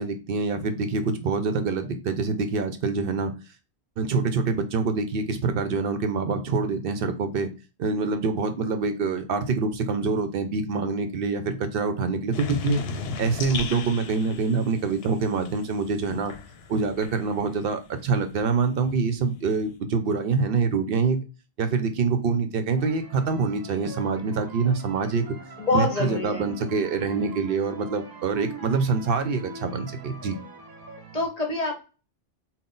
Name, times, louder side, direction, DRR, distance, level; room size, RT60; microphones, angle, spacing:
voice 1, 0.0-3.3 4.0-7.5 7.8-12.8 13.2-16.3 16.7-21.2 21.6-25.3 25.7-30.4, right 4 dB, 65° right, 0.7 m, -25 dB
sound 1, 12.3-17.7 18.0-19.7, left 4 dB, 75° left, 0.8 m, -37 dB
sound 2, 22.8-31.3, right 3 dB, 30° right, 0.5 m, -43 dB
voice 2, 25.6-26.5 31.1-31.8, left 3 dB, 40° left, 1.0 m, -26 dB
3.7 x 2.2 x 3.7 m
omnidirectional pair, 1.0 m